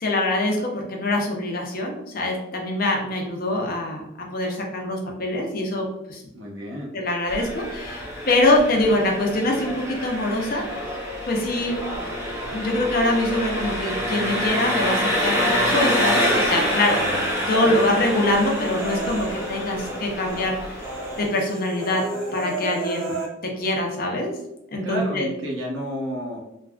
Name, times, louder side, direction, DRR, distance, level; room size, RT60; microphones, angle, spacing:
voice 1, 0.0-4.0 4.3-6.2 6.9-10.6 11.3-11.7 12.5-17.0 17.5-20.5 21.2-22.0 22.3-23.1 23.6-24.3 24.7-25.3, left 1 dB, 50° left, 0 dB, 0.6 m, -24 dB
voice 2, 6.3-6.9 17.5-17.8 24.8-26.4, equal, 75° right, -2 dB, 0.9 m, -30 dB
Engine, 7.3-21.3, equal, 15° right, 0.6 m, -27 dB
Human voice, 15.2-16.4 16.8-20.0 20.3-20.5 20.8-23.3, right 1 dB, 60° right, 1.3 m, -33 dB
3.3 x 2.3 x 2.4 m, 0.84 s
head